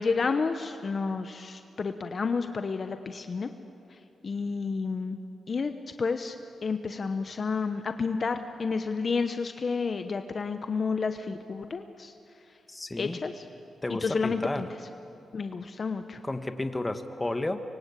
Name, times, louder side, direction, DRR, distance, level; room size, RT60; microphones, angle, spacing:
voice 1, 0.0-3.5 3.9-4.0 4.2-5.2 5.5-5.7 6.0-6.4 6.6-12.1 13.0-13.4 13.9-14.7 15.3-16.2, left 4 dB, 50° left, 8 dB, 1.1 m, -30 dB
voice 2, 12.7-13.2 13.8-14.6 16.2-17.6, left 2 dB, 20° left, 7 dB, 1.7 m, -32 dB
25.0 x 23.5 x 8.4 m, 2.6 s
cardioid pair, 75°, 0 cm